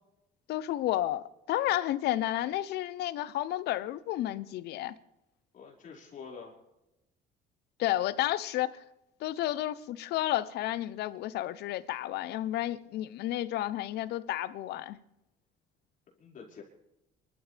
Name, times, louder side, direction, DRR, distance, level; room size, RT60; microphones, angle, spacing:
voice 1, 0.5-4.9 7.8-8.8 9.2-15.0, left 14 dB, 75° left, 0.8 m, -31 dB
voice 2, 5.5-6.5 16.2-16.6, left 5 dB, 50° left, 5.5 m, -46 dB
28.0 x 13.0 x 3.5 m
cardioid pair, 110°, 17 cm